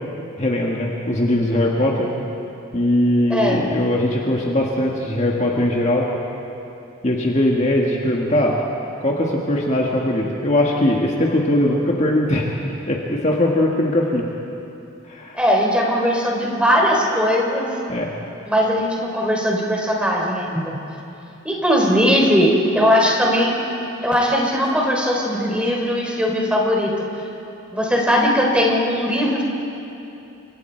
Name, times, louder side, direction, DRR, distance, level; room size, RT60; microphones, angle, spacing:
voice 1, 0.4-2.1 2.7-6.1 7.0-8.6 9.0-12.5 12.9-14.3 15.1-15.4 17.9-18.1, left 1 dB, 35° left, -2 dB, 1.8 m, -20 dB
voice 2, 3.3-3.6 15.3-17.7 18.5-20.7 21.4-23.5 24.0-26.9 27.7-29.4, equal, 5° right, -1 dB, 3.5 m, -19 dB
29.5 x 25.5 x 4.6 m, 2.9 s
head